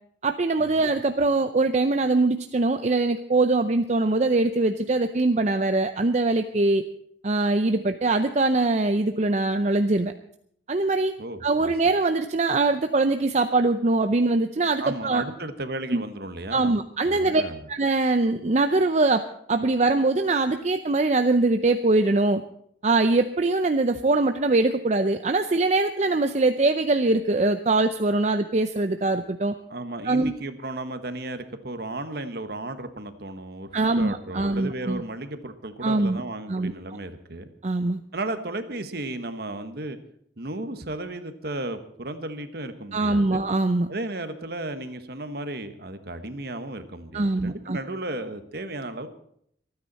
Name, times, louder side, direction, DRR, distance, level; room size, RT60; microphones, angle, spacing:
voice 1, 0.2-6.8 7.2-10.1 10.7-11.1 11.4-15.2 15.9-16.0 16.5-17.4 17.7-19.2 19.5-22.4 22.8-29.5 30.0-30.3 33.7-35.0 35.8-36.2 36.5-36.7 37.6-38.0 42.9-43.9 47.1-47.8, right 2 dB, 40° right, 8 dB, 0.6 m, -22 dB
voice 2, 14.8-16.8 17.0-17.7 29.7-37.5 38.1-40.0 40.4-43.4 43.9-49.1, right 2 dB, 60° right, 9 dB, 1.3 m, -34 dB
25.5 x 9.6 x 4.2 m, 0.67 s
head